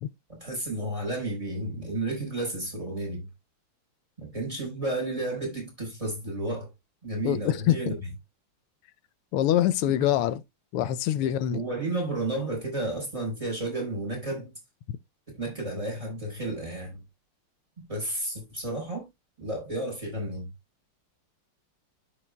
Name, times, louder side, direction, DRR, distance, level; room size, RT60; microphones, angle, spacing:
voice 1, 0.3-3.3 4.2-6.7 7.0-8.0 11.5-14.5 15.3-17.0 17.9-19.0 19.4-20.5, right 2 dB, 15° right, 4.4 m, -32 dB
voice 2, 7.2-7.9 9.3-10.4 10.7-11.6, left 12 dB, 85° left, 1.6 m, -25 dB
13.0 x 5.0 x 2.2 m
omnidirectional pair, 2.4 m